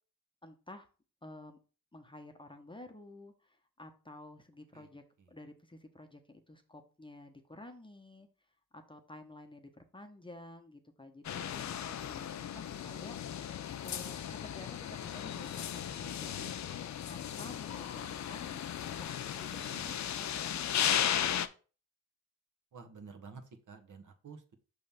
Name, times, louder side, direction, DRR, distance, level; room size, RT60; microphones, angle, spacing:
voice 1, 0.4-0.9 1.2-1.6 1.9-8.3 8.7-13.5 13.8-16.5 17.0-21.4, left 1 dB, 15° left, 5 dB, 1.0 m, -52 dB
sound 1, 11.2-21.5, left 9 dB, 50° left, 0.6 m, -36 dB
voice 2, 19.7-20.0 22.7-24.5, right 5 dB, 50° right, 6 dB, 1.3 m, -51 dB
5.6 x 3.3 x 5.7 m, 0.36 s
supercardioid pair, 50°, 38 cm